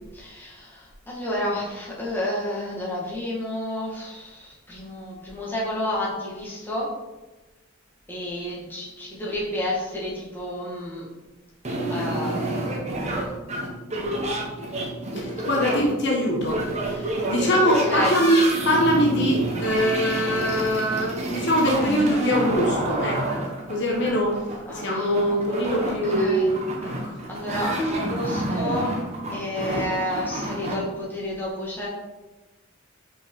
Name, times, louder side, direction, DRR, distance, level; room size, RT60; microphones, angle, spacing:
voice 1, 0.1-6.9 8.1-11.1 11.9-12.8 14.3-14.7 16.8-17.1 17.8-18.3 24.7-25.4 25.8-26.5 27.3-28.9 29.3-31.9, left 1 dB, 10° left, -6 dB, 2.0 m, -31 dB
sound 1, 11.6-30.7, right 1 dB, 35° right, 1.2 m, -29 dB
voice 2, 15.1-24.4 24.7-27.1, equal, 60° left, -1 dB, 1.3 m, -23 dB
5.6 x 4.9 x 4.8 m, 1.1 s
head